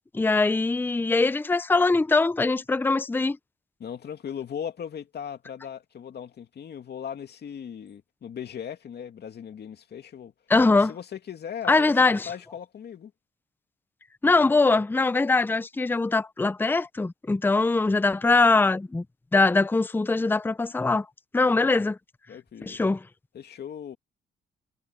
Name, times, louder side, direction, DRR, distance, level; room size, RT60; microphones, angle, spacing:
voice 1, 0.1-3.4 10.5-10.9 11.7-12.3 14.2-19.0 19.3-21.1 21.3-22.0 22.6-23.0, left 3 dB, 10° left, 0.6 m, -22 dB
voice 2, 3.8-10.3 10.7-13.1 21.5-21.6 22.3-22.8 23.3-24.0, left 8 dB, 55° left, 2.6 m, -38 dB
cardioid pair, 90°, 20 cm